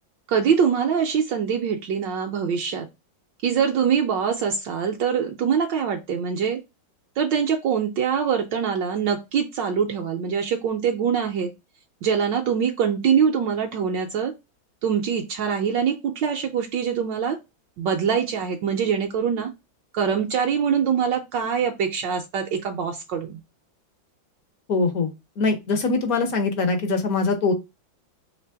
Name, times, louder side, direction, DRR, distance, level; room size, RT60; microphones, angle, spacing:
voice 1, 0.3-2.9 3.4-6.6 7.2-11.5 12.0-14.3 14.8-17.4 17.8-19.5 19.9-23.4, right 7 dB, 75° right, 3 dB, 1.2 m, -23 dB
voice 2, 24.7-25.1 25.4-27.5, left 3 dB, 60° left, 6 dB, 0.9 m, -22 dB
3.3 x 2.9 x 4.5 m, 0.24 s
omnidirectional pair, 2.2 m